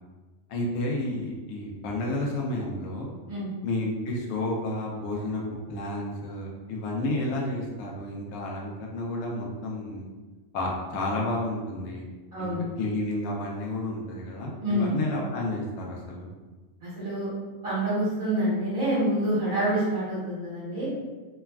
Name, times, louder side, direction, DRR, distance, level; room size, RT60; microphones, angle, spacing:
voice 1, 0.5-3.2 3.6-5.4 5.7-10.1 10.5-12.1 12.4-16.3, left 1 dB, 70° left, -2 dB, 0.9 m, -31 dB
voice 2, 12.3-12.6 14.6-15.0 16.8-17.3 17.6-20.9, right 1 dB, 45° right, -11 dB, 1.2 m, -27 dB
3.1 x 2.2 x 2.3 m, 1.3 s
omnidirectional pair, 1.5 m